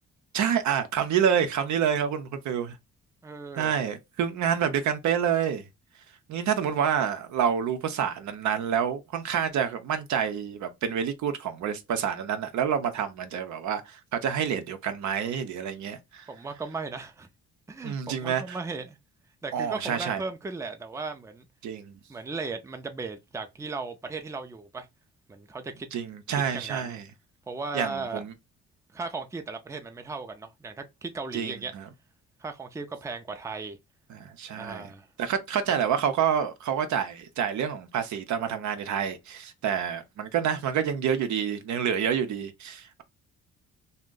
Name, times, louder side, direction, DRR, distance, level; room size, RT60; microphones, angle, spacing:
voice 1, 0.3-2.8 3.6-5.6 6.3-16.3 17.8-18.6 19.5-20.2 21.6-22.0 25.9-27.0 27.7-28.3 31.3-31.8 34.1-34.9 35.2-43.0, right 8 dB, 70° right, 0.7 m, -28 dB
voice 2, 3.2-3.7 16.3-17.3 17.7-19.0 19.4-21.5 22.1-24.9 25.3-25.9 26.3-27.0 27.5-28.2 28.9-31.7 32.4-33.8 34.6-35.1, right 4 dB, 10° right, 0.5 m, -36 dB
2.6 x 2.2 x 3.7 m
cardioid pair, 90°, 30 cm